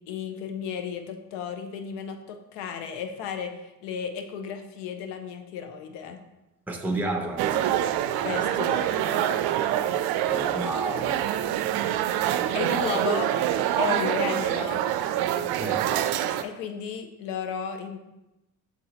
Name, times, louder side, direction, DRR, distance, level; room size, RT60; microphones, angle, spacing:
voice 1, 0.1-6.2 8.2-9.3 12.5-13.3 13.8-14.8 16.4-18.0, left 7 dB, 70° left, 6 dB, 0.8 m, -34 dB
voice 2, 6.7-7.8 10.3-11.2 15.5-15.9, right 2 dB, 5° right, 2 dB, 1.0 m, -31 dB
sound 1, 7.4-16.4, right 11 dB, 60° right, 0.5 m, -26 dB
6.1 x 3.9 x 4.2 m, 0.97 s
hypercardioid pair, 65°, 43 cm